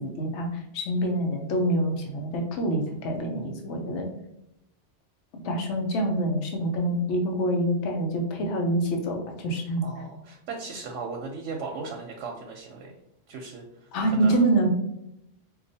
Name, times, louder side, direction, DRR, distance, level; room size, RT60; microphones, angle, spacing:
voice 1, 0.0-4.1 5.3-9.8 13.9-14.7, right 1 dB, 75° left, 3 dB, 1.0 m, -26 dB
voice 2, 9.8-12.9 13.3-14.4, right 4 dB, 90° right, 1 dB, 0.9 m, -37 dB
4.6 x 2.4 x 2.6 m, 0.82 s
omnidirectional pair, 1.2 m